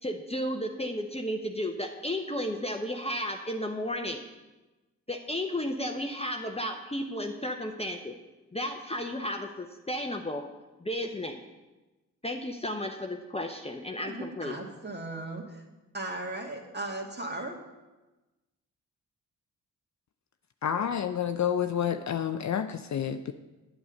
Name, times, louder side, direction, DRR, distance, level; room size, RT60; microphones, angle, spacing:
voice 1, 0.0-4.2 5.1-8.1 8.5-10.5 10.8-11.4 12.2-14.6, left 1 dB, 15° left, 3 dB, 0.9 m, -33 dB
voice 2, 14.0-15.7 15.9-17.6, right 2 dB, 25° right, 1 dB, 2.1 m, -37 dB
voice 3, 20.6-23.3, left 8 dB, 45° left, 8 dB, 0.6 m, -29 dB
8.6 x 8.2 x 5.2 m, 1.1 s
supercardioid pair, 40°, 39 cm